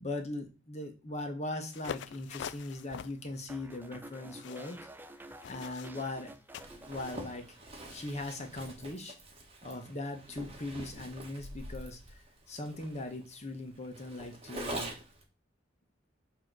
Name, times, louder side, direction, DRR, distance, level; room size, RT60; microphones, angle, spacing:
voice 1, 0.0-4.8 5.4-6.3 6.7-7.4 7.9-9.2 9.6-14.9, left 2 dB, 35° left, 4 dB, 1.1 m, -40 dB
sound 1, 1.7-7.2, left 8 dB, 65° left, 0.3 m, -46 dB
sound 2, 3.5-7.9 8.2-8.6, right 1 dB, 10° right, 0.4 m, -51 dB
Zipper (clothing), 6.5-15.2, right 1 dB, 30° right, 1.4 m, -45 dB
7.6 x 3.0 x 6.1 m, 0.31 s
head